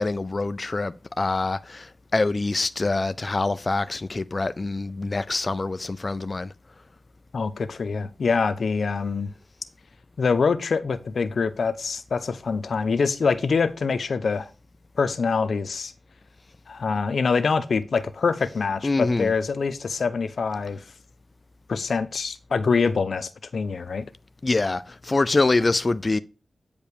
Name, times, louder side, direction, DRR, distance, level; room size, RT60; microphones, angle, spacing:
voice 1, 0.0-6.5 18.8-19.3 24.4-26.2, left 3 dB, 35° left, 0.4 m, -25 dB
voice 2, 7.3-9.3 10.2-14.5 15.0-15.9 16.7-20.8 21.7-24.0, left 5 dB, 75° left, 0.8 m, -25 dB
8.9 x 5.2 x 6.7 m
wide cardioid pair, 85°, 0 cm